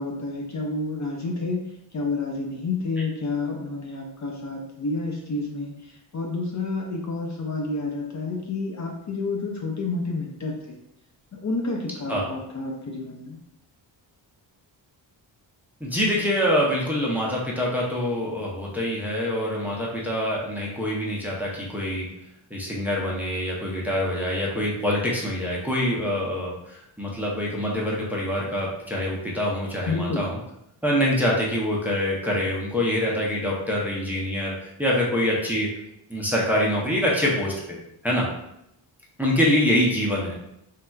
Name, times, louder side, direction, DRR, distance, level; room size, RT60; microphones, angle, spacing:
voice 1, 0.0-1.6 1.9-10.8 11.3-13.4 29.9-30.2, left 3 dB, 40° left, 0 dB, 0.5 m, -29 dB
voice 2, 15.8-22.1 22.5-30.4 30.8-35.7 36.1-37.8 38.0-38.3 39.2-40.3, left 1 dB, 5° right, -4 dB, 0.6 m, -25 dB
3.2 x 2.7 x 2.3 m, 0.80 s
wide cardioid pair, 115°, 44 cm